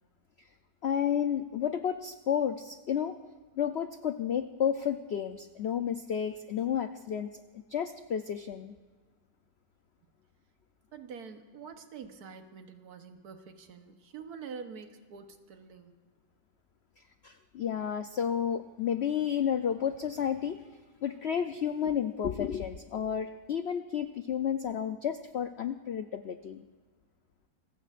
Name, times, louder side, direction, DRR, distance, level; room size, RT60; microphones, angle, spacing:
voice 1, 0.8-3.2 3.6-7.3 7.7-8.7 17.2-20.6 21.0-26.6, left 8 dB, 75° left, 9 dB, 0.6 m, -31 dB
voice 2, 10.9-16.0, right 6 dB, 70° right, 7 dB, 1.5 m, -46 dB
27.5 x 15.5 x 2.5 m, 1.5 s
omnidirectional pair, 1.8 m